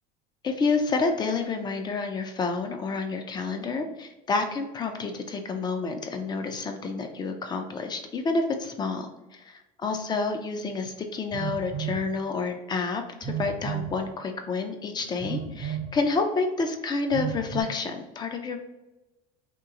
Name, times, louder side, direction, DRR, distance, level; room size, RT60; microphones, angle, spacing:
voice 1, 0.4-18.6, left 4 dB, 20° left, 5 dB, 0.5 m, -29 dB
Telephone, 11.3-12.0 13.2-14.0 15.2-15.9 17.1-17.6, right 9 dB, 30° right, 0.6 m, -32 dB
3.0 x 3.0 x 3.6 m, 1.0 s
cardioid pair, 135°, 19 cm